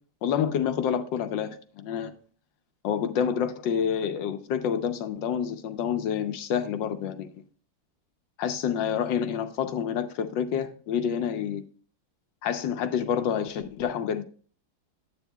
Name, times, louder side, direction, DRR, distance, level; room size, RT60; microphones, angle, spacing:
voice 1, 0.2-2.1 2.8-7.3 8.4-11.6 12.4-14.2, left 8 dB, 70° left, 1.4 m, -28 dB
10.0 x 8.5 x 2.3 m
omnidirectional pair, 2.2 m